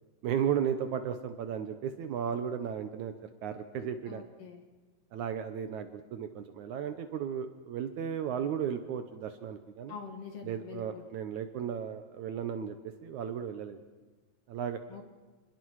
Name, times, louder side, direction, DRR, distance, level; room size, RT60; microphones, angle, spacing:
voice 1, 0.2-3.1 3.4-4.2 5.1-10.0 10.4-13.8 14.5-14.8, right 8 dB, 70° right, 8 dB, 2.0 m, -35 dB
voice 2, 4.1-4.6 9.9-11.0 14.9-15.1, left 6 dB, 50° left, 4 dB, 2.4 m, -45 dB
29.5 x 21.5 x 4.8 m, 1.4 s
omnidirectional pair, 4.1 m